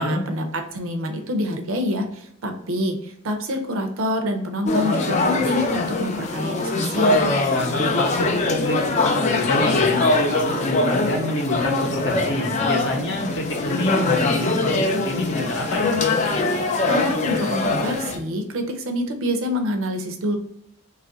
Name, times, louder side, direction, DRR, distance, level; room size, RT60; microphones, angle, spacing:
voice 1, 0.0-7.2 16.8-20.4, equal, 70° right, 5 dB, 0.6 m, -26 dB
sound 1, 4.7-18.2, left 3 dB, 30° left, 0.3 m, -22 dB
voice 2, 7.5-15.9, left 1 dB, 55° left, 2 dB, 0.7 m, -26 dB
3.0 x 2.4 x 3.8 m, 0.75 s
head